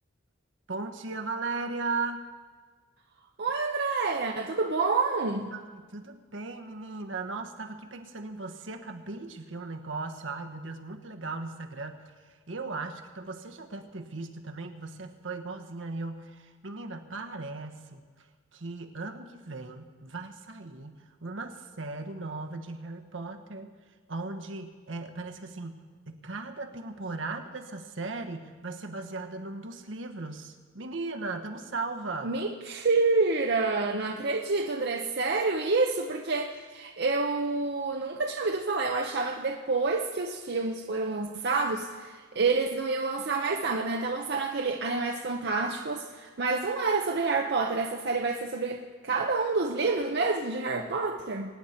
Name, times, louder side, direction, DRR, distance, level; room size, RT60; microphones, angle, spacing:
voice 1, 0.7-2.2 5.5-18.0 18.5-23.7 24.1-32.3, right 3 dB, 75° right, 5 dB, 1.2 m, -37 dB
voice 2, 3.4-5.5 32.2-51.5, right 3 dB, 60° right, 2 dB, 0.7 m, -28 dB
24.0 x 9.5 x 4.4 m, 1.5 s
head